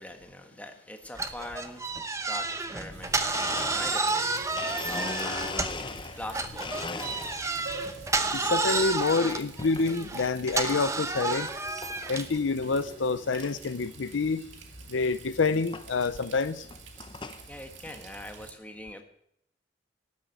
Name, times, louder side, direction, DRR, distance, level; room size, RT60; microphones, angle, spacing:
voice 1, 0.0-8.3 17.5-19.0, left 1 dB, 10° left, 1.5 m, -44 dB
sound 1, 1.2-5.9 6.3-12.4, right 3 dB, 15° right, 0.8 m, -30 dB
Water tap faucet, 2.9-18.5, right 3 dB, 80° right, 2.1 m, -47 dB
Domestic sounds home sounds, 3.3-6.3 6.6-7.6 8.1-8.6 9.6-9.9 10.5-10.6 11.5-11.6 11.8-12.1 12.6-12.7 12.9-13.0 13.4-13.5 14.8-14.9 15.7-15.9 16.5-17.4, left 4 dB, 25° left, 0.6 m, -38 dB
voice 2, 8.3-11.5 12.1-14.5 14.9-16.7, left 4 dB, 85° left, 0.6 m, -27 dB
13.0 x 7.6 x 9.3 m
head